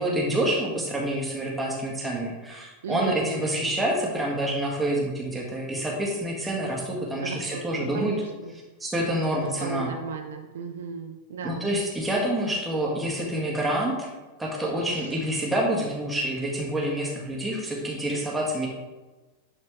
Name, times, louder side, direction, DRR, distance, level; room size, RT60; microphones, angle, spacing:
voice 1, 0.0-8.1 8.8-9.9 11.4-14.1 14.4-18.7, right 1 dB, 5° right, -3 dB, 1.9 m, -27 dB
voice 2, 2.8-3.4 7.2-8.5 9.6-11.7 14.9-15.2, right 4 dB, 60° right, 4 dB, 0.6 m, -35 dB
11.0 x 4.3 x 3.3 m, 1.2 s
figure-of-eight pair, 90°, 0 cm